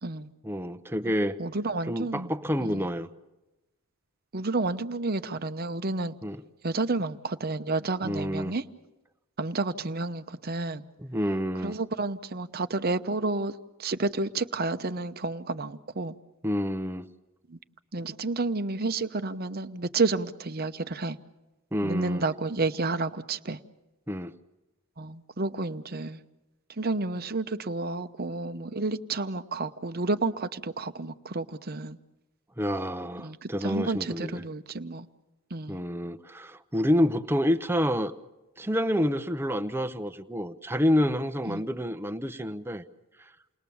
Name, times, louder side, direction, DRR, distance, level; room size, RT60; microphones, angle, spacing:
voice 1, 0.4-1.4 1.9-3.1 6.2-6.4 8.0-8.5 11.0-11.8 16.4-17.1 21.7-22.2 24.1-24.3 32.6-34.4 35.7-38.1 38.6-42.8, equal, 10° right, 10 dB, 0.8 m, -28 dB
voice 2, 1.4-2.3 2.6-2.9 4.3-6.2 6.6-8.6 9.4-10.8 11.6-13.5 13.8-16.2 17.5-17.6 17.9-21.2 21.8-23.6 25.0-26.2 26.7-32.0 33.2-35.1 35.5-35.8 41.5-41.6, right 3 dB, 45° right, 11 dB, 0.9 m, -30 dB
29.0 x 20.5 x 7.1 m, 1.1 s
head